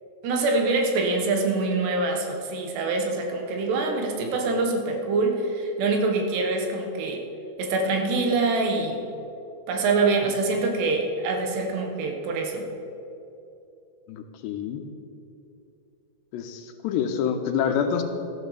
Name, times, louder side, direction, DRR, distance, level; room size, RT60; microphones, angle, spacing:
voice 1, 0.2-7.2 7.6-9.1 9.7-12.7, right 3 dB, 75° right, 3 dB, 3.5 m, -25 dB
voice 2, 14.1-14.8 16.3-18.0, left 8 dB, 85° left, 6 dB, 3.2 m, -27 dB
14.5 x 11.0 x 6.9 m, 2.8 s
omnidirectional pair, 4.9 m